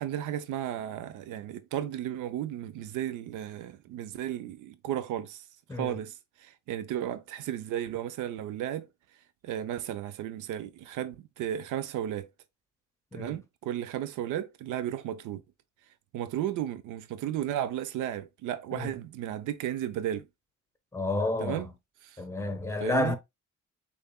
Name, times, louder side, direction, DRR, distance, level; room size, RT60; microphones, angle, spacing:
voice 1, 0.0-5.4 5.7-6.1 6.4-8.9 9.4-12.3 13.1-15.4 16.1-20.3 21.4-21.7 22.0-22.2 22.8-23.2, right 11 dB, 85° right, 0.5 m, -34 dB
voice 2, 5.7-6.0 13.1-13.4 18.7-18.9 20.9-21.7 22.2-23.2, left 2 dB, 10° left, 0.9 m, -30 dB
6.5 x 2.5 x 2.2 m
cardioid pair, 90°, 30 cm